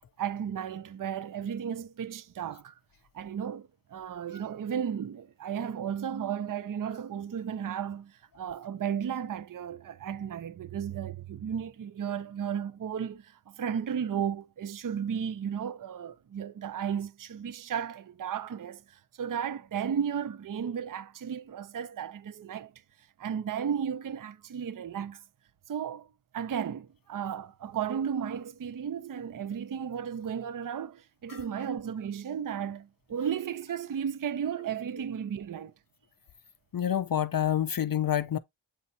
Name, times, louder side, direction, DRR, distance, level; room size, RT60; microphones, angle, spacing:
voice 1, 0.2-2.7 3.1-22.7 23.2-25.2 25.7-26.1 26.3-35.7, right 8 dB, 45° right, 0.5 m, -34 dB
voice 2, 36.7-38.4, left 10 dB, 50° left, 0.4 m, -27 dB
8.4 x 4.1 x 2.8 m
wide cardioid pair, 175°, 48 cm